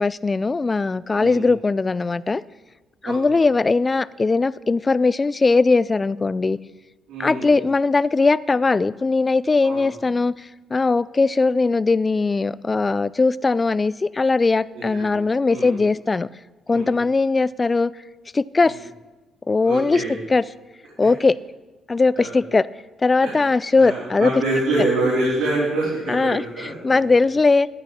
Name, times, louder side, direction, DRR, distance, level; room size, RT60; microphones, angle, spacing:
voice 1, 0.0-2.4 3.0-6.6 7.2-16.3 16.7-17.9 18.3-18.8 19.5-20.0 20.3-20.4 21.0-21.4 21.9-22.7 23.0-24.3 26.1-27.7, left 3 dB, 25° left, 19 dB, 0.3 m, -19 dB
voice 2, 7.1-7.5 9.6-9.8 14.7-15.1 15.5-15.7 16.7-16.9 19.6-20.1 22.2-22.3 23.2-23.3 23.7-27.0, right 2 dB, 90° right, -8 dB, 4.0 m, -25 dB
13.0 x 8.7 x 4.2 m, 1.2 s
cardioid pair, 90°, 0 cm